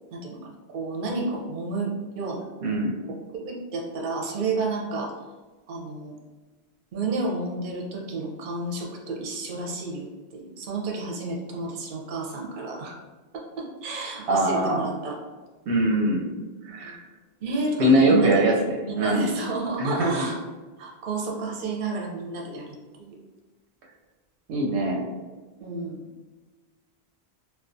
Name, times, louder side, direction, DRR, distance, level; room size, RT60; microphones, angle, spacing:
voice 1, 0.7-2.5 3.1-5.1 5.7-6.2 6.9-10.1 10.3-13.0 13.6-15.2 16.8-16.9 17.4-18.3 18.8-20.4 20.8-23.2 25.6-26.0, right 3 dB, 60° right, -1 dB, 0.7 m, -31 dB
voice 2, 2.6-2.9 14.3-14.8 15.7-16.2 16.6-17.0 17.8-19.3 19.8-20.2 24.5-25.0, right 1 dB, 90° right, 0 dB, 0.9 m, -22 dB
2.3 x 2.2 x 2.5 m, 1.3 s
omnidirectional pair, 1.1 m